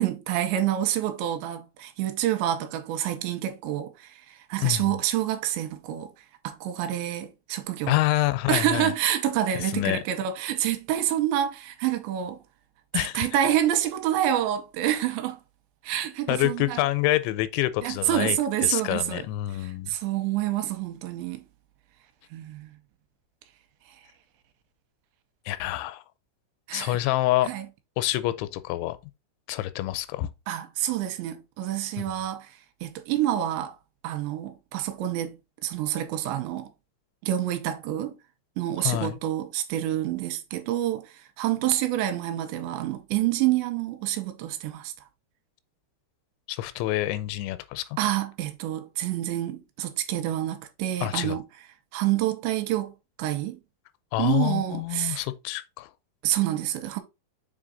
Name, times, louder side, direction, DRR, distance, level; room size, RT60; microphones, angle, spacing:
voice 1, 0.0-6.1 6.4-7.9 8.5-12.4 12.9-15.4 15.8-16.8 17.8-19.2 19.6-21.4 22.3-22.7 26.7-27.0 27.4-27.7 30.5-32.5 32.8-33.8 34.0-36.7 37.2-38.2 38.6-44.9 48.0-51.4 51.9-52.9 53.2-53.6 54.2-55.2 56.2-57.0, right 12 dB, 85° right, 2.9 m, -27 dB
voice 2, 4.6-4.9 7.9-8.9 9.6-10.0 12.9-13.3 16.3-19.9 25.5-26.0 26.7-27.5 28.0-29.0 29.5-30.3 38.8-39.2 46.5-47.9 51.0-51.4 54.1-55.9, left 16 dB, 85° left, 2.9 m, -27 dB
6.4 x 3.9 x 3.8 m
omnidirectional pair, 5.3 m